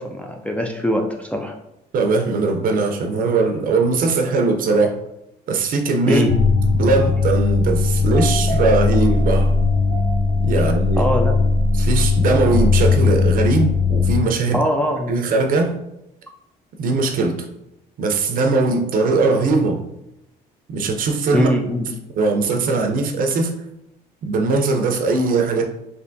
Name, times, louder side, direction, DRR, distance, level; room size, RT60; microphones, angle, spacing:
voice 1, 0.0-1.6 6.1-6.3 10.6-10.7 11.0-11.4 14.5-15.2 21.3-21.9, equal, 10° left, 2 dB, 0.3 m, -21 dB
voice 2, 1.9-5.0 5.5-6.2 6.7-9.5 10.4-11.1 11.8-14.6 15.1-15.8 16.8-17.4 18.0-19.8 20.7-21.5 22.2-23.5 24.2-25.6, right 3 dB, 55° right, 4 dB, 0.5 m, -20 dB
sound 1, 6.3-14.2, left 4 dB, 30° left, 0.7 m, -18 dB
3.3 x 2.7 x 2.6 m, 0.85 s
cardioid pair, 110°, 17 cm